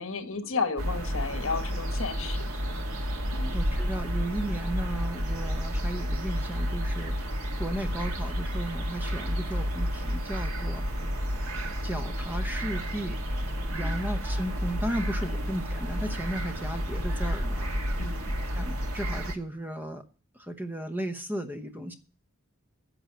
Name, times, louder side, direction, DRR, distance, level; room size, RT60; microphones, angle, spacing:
voice 1, 0.0-2.4 3.3-3.5 9.3-9.4 13.7-14.0 15.2-15.4 18.0-18.3, left 4 dB, 70° left, 1.4 m, -33 dB
sound 1, 0.8-19.3, equal, 80° right, 1.8 m, -31 dB
voice 2, 3.5-7.2 7.6-10.9 11.8-13.2 13.7-17.6 18.6-20.0 20.3-21.9, right 1 dB, 10° right, 0.9 m, -35 dB
10.5 x 6.3 x 8.8 m
head